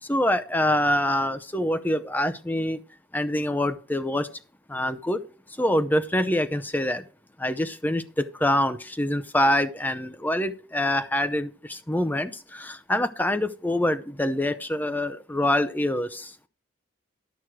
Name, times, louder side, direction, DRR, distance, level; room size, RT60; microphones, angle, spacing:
voice 1, 0.1-2.8 3.1-4.3 4.7-5.2 5.6-7.0 7.4-16.3, left 1 dB, 10° left, 0.6 m, -25 dB
11.5 x 6.3 x 4.5 m
head